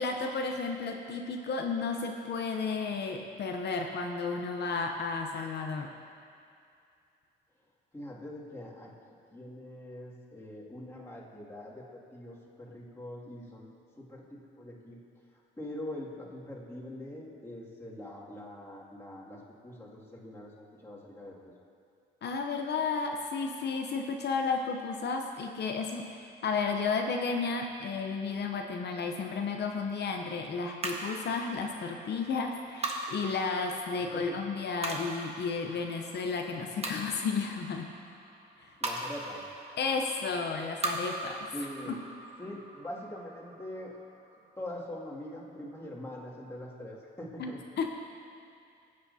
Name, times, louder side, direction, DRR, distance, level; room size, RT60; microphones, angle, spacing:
voice 1, 0.0-5.9 22.2-37.9 38.6-38.7 39.8-41.4 47.4-47.9, left 4 dB, 60° left, 3 dB, 0.8 m, -33 dB
voice 2, 7.9-8.9 9.3-13.7 14.0-15.0 15.6-21.5 34.1-34.4 38.8-39.4 41.5-42.0 42.4-44.0 44.6-47.6, left 1 dB, 15° left, -6 dB, 2.3 m, -43 dB
sound 1, 30.8-45.3, right 2 dB, 30° right, 1.3 m, -41 dB
16.0 x 8.6 x 2.8 m, 2.4 s
cardioid pair, 90°, 20 cm